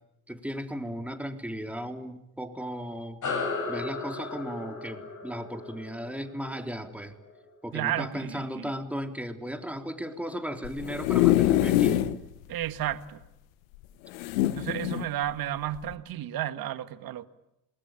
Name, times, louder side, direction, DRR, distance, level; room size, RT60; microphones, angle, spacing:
voice 1, 0.3-3.2 3.7-7.1 7.6-12.1, equal, 5° right, 3.5 m, -36 dB
sound 1, 3.2-8.0, left 4 dB, 45° left, 7.5 m, -36 dB
voice 2, 7.7-8.7 12.5-13.2 14.5-17.3, right 12 dB, 60° right, 1.7 m, -32 dB
sound 2, 10.6-12.2 12.6-12.7 12.9-13.0 14.1-15.1 15.7-15.9, left 14 dB, 85° left, 1.1 m, -24 dB
27.5 x 20.5 x 9.0 m
hypercardioid pair, 60°, 40 cm